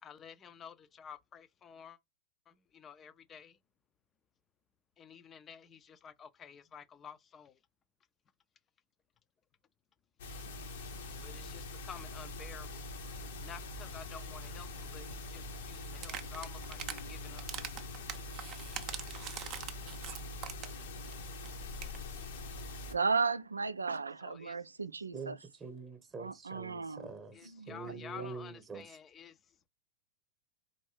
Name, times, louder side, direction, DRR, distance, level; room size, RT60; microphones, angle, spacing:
voice 1, 0.0-2.0 2.5-3.6 5.0-7.6 11.2-12.9 13.4-17.5 24.2-24.6 27.3-29.7, left 7 dB, 25° left, 0.5 m, -51 dB
sound 1, 10.2-22.9, left 2 dB, 60° left, 0.7 m, -44 dB
sound 2, 16.0-17.0 17.4-20.8 21.1-21.2 21.5-21.6 21.7-22.0, right 10 dB, 35° right, 0.6 m, -42 dB
voice 2, 22.9-25.4 26.2-27.1 27.5-28.0, right 4 dB, 80° right, 0.3 m, -35 dB
voice 3, 25.1-28.8, right 4 dB, 15° right, 1.0 m, -45 dB
4.3 x 2.6 x 3.2 m
figure-of-eight pair, 90°, 0 cm